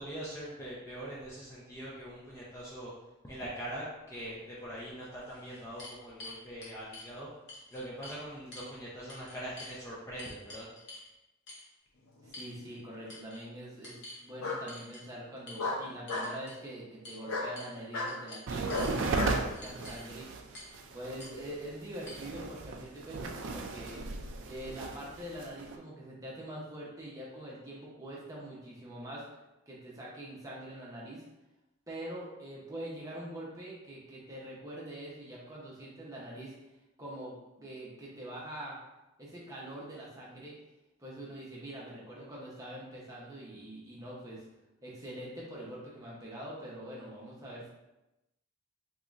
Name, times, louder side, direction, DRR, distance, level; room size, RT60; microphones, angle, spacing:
voice 1, 0.0-2.9 3.2-7.3 7.7-10.7, right 1 dB, 15° left, -7 dB, 0.4 m, -42 dB
sound 1, 4.6-4.7 5.2-7.1 7.5-8.2 8.5-8.7 9.1-9.8 10.2-11.1 11.5-11.7 12.3-12.8 13.1-13.4 13.8-14.2 14.7-15.0 15.5-15.6 16.1-16.6 17.0-17.2 17.6-17.8 18.1-18.9 19.5-20.1 20.5-20.8 21.2-21.3 22.1-22.2, left 2 dB, 50° left, 0.9 m, -48 dB
Bark, 12.2-12.9 14.4-14.6 15.6-16.3 17.3-17.5 17.9-18.1 18.7-19.4, left 2 dB, 90° left, 0.7 m, -34 dB
voice 2, 12.2-20.3 20.9-24.0 24.5-29.2 29.7-31.2 31.9-36.5 37.0-38.8 39.2-40.6 41.0-44.4 44.8-47.7, right 1 dB, 15° right, -5 dB, 0.7 m, -44 dB
sound 2, 18.5-25.8, right 3 dB, 60° right, 0.4 m, -36 dB
3.7 x 2.9 x 2.4 m, 0.97 s
head